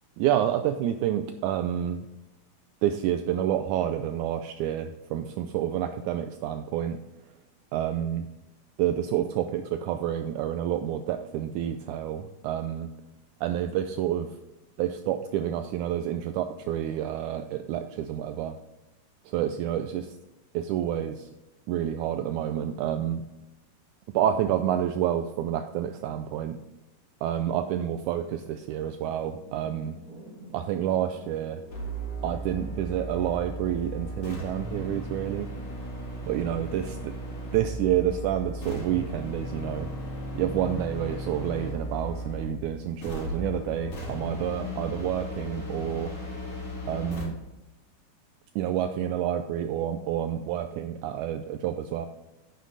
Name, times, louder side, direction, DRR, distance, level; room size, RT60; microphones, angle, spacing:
voice 1, 0.2-2.1 2.8-7.0 7.7-8.3 8.8-12.9 13.4-14.4 14.8-18.6 19.3-20.2 20.5-21.3 21.7-23.3 24.1-26.6 27.2-30.0 30.5-31.6 32.2-35.5 36.3-37.0 37.5-39.9 40.4-46.1 46.9-47.4 48.6-52.1, right 10 dB, 80° right, 8 dB, 1.9 m, -29 dB
sound 1, 28.2-33.8, right 1 dB, 30° right, 2.3 m, -51 dB
sound 2, 31.7-42.6 43.0-47.2, equal, 45° left, 4.4 m, -36 dB
9.9 x 7.4 x 4.0 m, 1.0 s
omnidirectional pair, 3.7 m